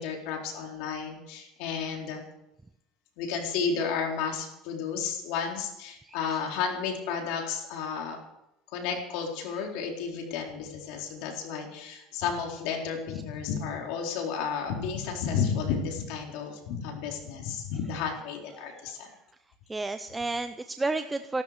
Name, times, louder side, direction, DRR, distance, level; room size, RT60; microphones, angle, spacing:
voice 1, 0.0-2.2 3.2-8.2 8.7-19.1, left 6 dB, 70° left, 1 dB, 4.1 m, -32 dB
voice 2, 19.7-21.4, right 3 dB, 10° right, 9 dB, 0.6 m, -31 dB
16.0 x 13.0 x 6.7 m, 0.85 s
cardioid pair, 145°, 0 cm